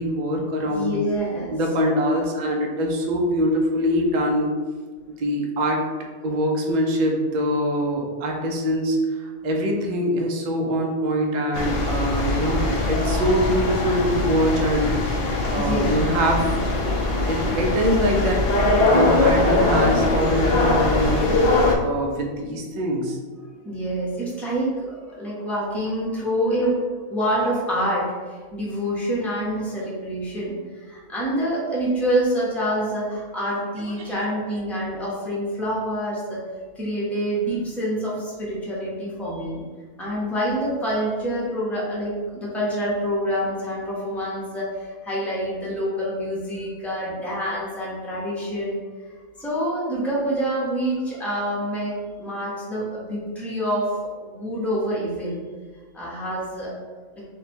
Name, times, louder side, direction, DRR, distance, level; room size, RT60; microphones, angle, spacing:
voice 1, 0.0-0.9 1.5-4.6 5.2-5.8 6.2-14.9 15.5-16.5 16.7-17.0 17.3-18.4 18.8-21.5 21.8-23.2 34.0-34.1, equal, 80° right, 0 dB, 0.4 m, -23 dB
voice 2, 0.7-1.6 15.6-16.0 23.6-26.8 27.1-30.6 30.8-36.4 36.8-39.6 40.0-48.8 49.4-53.9 54.2-55.4 55.9-56.7, equal, ahead, -6 dB, 0.5 m, -26 dB
sound 1, 11.5-21.8, left 2 dB, 65° left, 0.6 m, -21 dB
3.2 x 2.2 x 4.2 m, 1.4 s
omnidirectional pair, 1.5 m